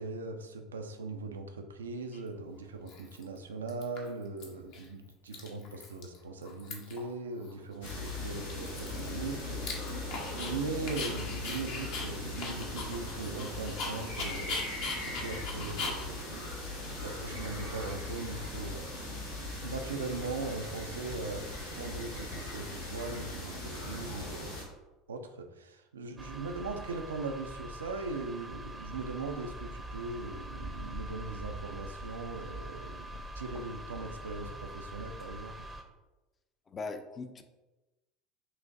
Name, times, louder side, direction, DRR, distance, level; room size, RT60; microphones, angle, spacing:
voice 1, 0.0-16.2 17.0-18.8 19.6-24.3 25.1-35.6, right 3 dB, 80° right, 6 dB, 0.4 m, -40 dB
Dog, 2.1-2.2 2.9-3.4 3.7-4.4 4.7-4.8 5.1-6.2 6.4-7.1 7.4-7.5 7.9-10.5 10.9-17.5, left 3 dB, 60° left, 0.8 m, -40 dB
sound 1, 7.8-24.6, left 2 dB, 85° left, 1.2 m, -39 dB
sound 2, 26.2-35.8, right 1 dB, 20° right, 0.6 m, -43 dB
voice 2, 36.7-37.4, left 4 dB, 30° left, 7 dB, 0.4 m, -40 dB
5.8 x 2.5 x 2.5 m, 1.1 s
figure-of-eight pair, 70°, 0 cm